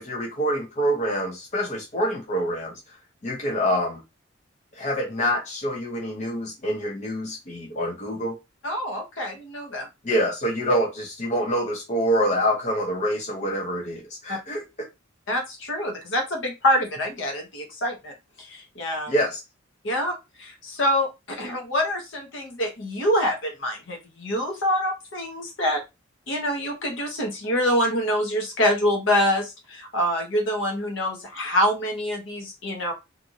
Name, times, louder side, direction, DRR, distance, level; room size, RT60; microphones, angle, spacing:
voice 1, 0.0-2.8 3.2-4.0 4.7-8.4 10.0-14.6 19.1-19.4, equal, 35° left, 0.6 m, -26 dB
voice 2, 8.6-9.9 14.3-14.4 15.3-19.1 19.8-25.8 26.3-32.9, equal, 65° left, 1.0 m, -26 dB
2.9 x 2.5 x 2.6 m
head